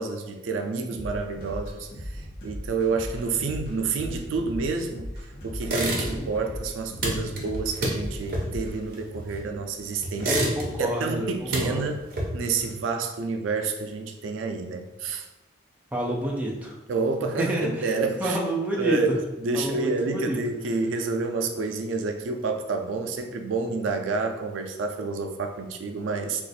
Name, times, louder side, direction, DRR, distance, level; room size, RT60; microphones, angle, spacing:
voice 1, 0.0-10.4 10.8-12.0 12.3-15.3 16.9-18.4 18.8-26.4, right 4 dB, 90° right, 5 dB, 0.4 m, -29 dB
sound 1, 0.9-8.8, equal, 50° left, 0.9 m, -37 dB
sound 2, 5.6-6.4 6.7-9.6 10.0-11.0 11.3-12.6, right 1 dB, 50° right, 0.7 m, -29 dB
voice 2, 10.2-11.9 15.9-16.7 17.4-19.2 19.5-20.4, right 1 dB, 10° right, -3 dB, 0.4 m, -29 dB
2.4 x 2.4 x 4.0 m, 1.0 s
head